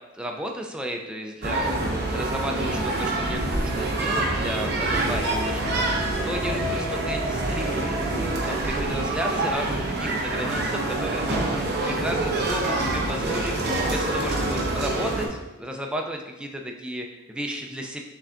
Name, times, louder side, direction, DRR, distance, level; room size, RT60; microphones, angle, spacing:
voice 1, 0.1-13.5 13.9-18.0, equal, 5° right, 1 dB, 0.3 m, -34 dB
sound 1, 1.4-15.3, right 2 dB, 50° right, 0.7 m, -26 dB
5.9 x 3.3 x 2.5 m, 1.0 s
head